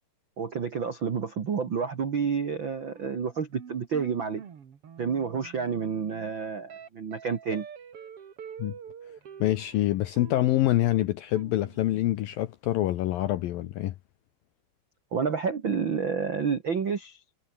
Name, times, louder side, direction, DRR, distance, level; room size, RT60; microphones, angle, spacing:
voice 1, 0.4-4.4 5.0-7.6 15.1-17.2, right 6 dB, 80° right, 1.1 m, -29 dB
sound 1, 2.8-12.0, right 7 dB, 45° right, 2.0 m, -46 dB
voice 2, 9.4-13.9, left 14 dB, 75° left, 2.1 m, -26 dB
omnidirectional pair, 5.3 m